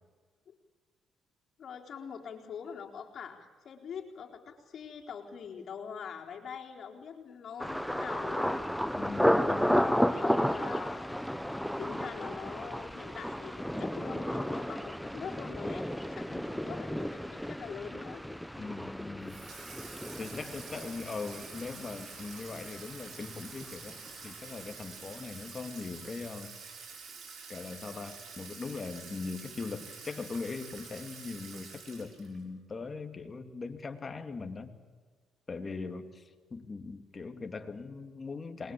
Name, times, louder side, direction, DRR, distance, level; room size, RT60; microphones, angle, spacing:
voice 1, 1.6-8.7 9.5-18.2, left 7 dB, 60° left, 1 dB, 4.2 m, -44 dB
Thunder, 7.6-23.4 23.6-24.3 24.7-24.9, equal, ahead, 0.8 m, -33 dB
voice 2, 9.0-9.9 18.6-19.4 20.2-26.5 27.5-34.7 35.5-38.7, left 4 dB, 30° left, 6 dB, 2.8 m, -40 dB
Water tap faucet / Sink (filling or washing), 19.3-32.4, right 5 dB, 60° right, 5.9 m, -48 dB
28.0 x 22.0 x 8.6 m, 1.5 s
cardioid pair, 90°, 0 cm